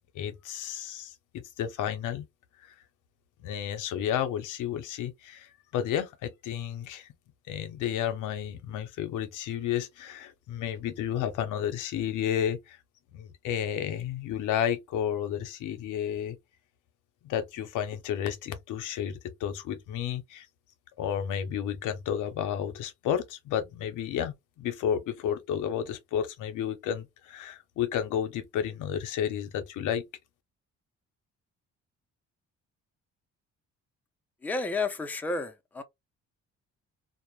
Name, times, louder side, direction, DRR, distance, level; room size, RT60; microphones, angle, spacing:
voice 1, 0.1-2.3 3.4-7.1 7.5-12.8 13.1-16.4 17.2-20.5 21.0-30.0, left 9 dB, 85° left, 0.6 m, -32 dB
voice 2, 34.4-35.8, left 3 dB, 5° left, 0.4 m, -31 dB
2.2 x 2.0 x 3.0 m
cardioid pair, 90°, 30 cm